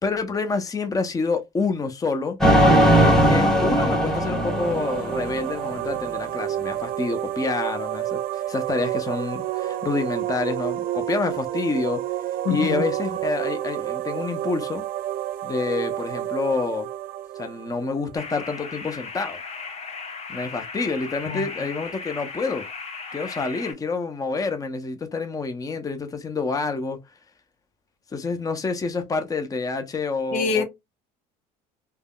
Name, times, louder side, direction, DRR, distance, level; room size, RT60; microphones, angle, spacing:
voice 1, 0.0-2.4 2.9-12.0 12.5-14.9 15.4-16.9 17.4-19.4 20.3-22.7 23.1-27.0 28.1-30.6, left 4 dB, 20° left, 0.6 m, -28 dB
sound 1, 2.4-5.8, equal, ahead, 1.2 m, -19 dB
sound 2, 3.9-18.6, right 13 dB, 50° right, 0.4 m, -30 dB
voice 2, 12.5-12.8 21.3-21.4 30.3-30.6, left 6 dB, 70° left, 0.8 m, -24 dB
sound 3, 18.2-23.7, left 4 dB, 35° left, 1.0 m, -36 dB
3.4 x 2.1 x 2.2 m
supercardioid pair, 85°, 18 cm